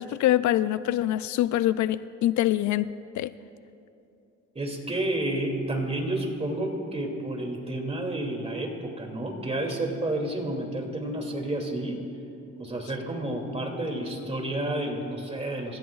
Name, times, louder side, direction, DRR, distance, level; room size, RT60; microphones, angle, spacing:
voice 1, 0.0-2.9 3.1-3.3, left 13 dB, 75° left, 0.4 m, -24 dB
voice 2, 4.5-12.0 12.6-15.8, right 1 dB, 20° right, 2.5 m, -30 dB
27.0 x 15.0 x 2.4 m
cardioid pair, 90°, 30 cm